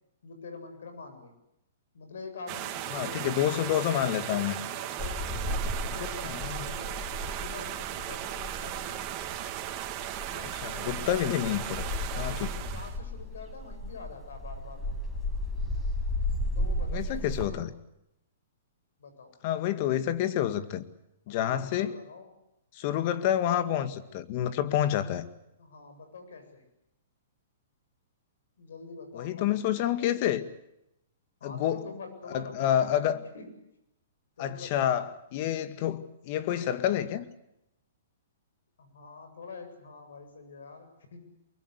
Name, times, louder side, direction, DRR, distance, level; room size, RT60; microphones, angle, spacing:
voice 1, 0.2-1.3 1.9-3.4 4.7-9.0 10.3-10.5 11.0-11.6 12.1-15.0 16.6-17.3 19.0-19.3 21.3-22.3 25.6-26.6 28.6-30.1 31.4-33.6 34.4-35.0 38.8-41.3, left 4 dB, 80° left, 7.8 m, -46 dB
sound 1, 2.5-13.0, right 12 dB, 35° right, 3.1 m, -37 dB
voice 2, 2.9-4.6 6.2-6.7 10.6-11.6 12.2-12.5 16.9-17.7 19.4-20.9 21.3-22.0 22.7-25.3 29.2-30.5 31.4-31.8 32.3-33.2 34.4-37.3, left 11 dB, 45° left, 2.0 m, -28 dB
sound 2, 5.0-17.5, left 1 dB, 10° left, 7.0 m, -34 dB
24.5 x 22.0 x 8.3 m
hypercardioid pair, 140°, 0 cm